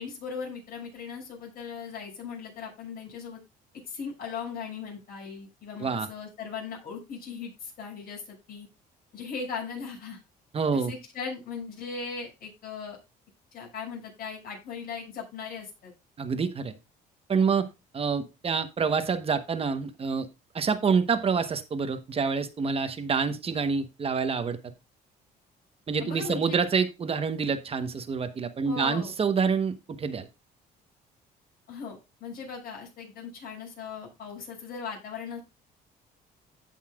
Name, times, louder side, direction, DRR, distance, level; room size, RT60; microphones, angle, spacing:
voice 1, 0.0-3.4 3.9-8.7 9.1-10.2 10.7-13.0 13.5-15.9 26.0-26.6 28.6-29.1 31.7-35.4, left 5 dB, 60° left, 0 dB, 6.4 m, -38 dB
voice 2, 10.5-10.9 16.2-16.7 17.3-17.7 17.9-20.3 20.5-24.6 25.9-30.3, right 5 dB, 35° right, 9 dB, 1.1 m, -27 dB
16.0 x 5.6 x 2.4 m, 0.26 s
cardioid pair, 110°, 17 cm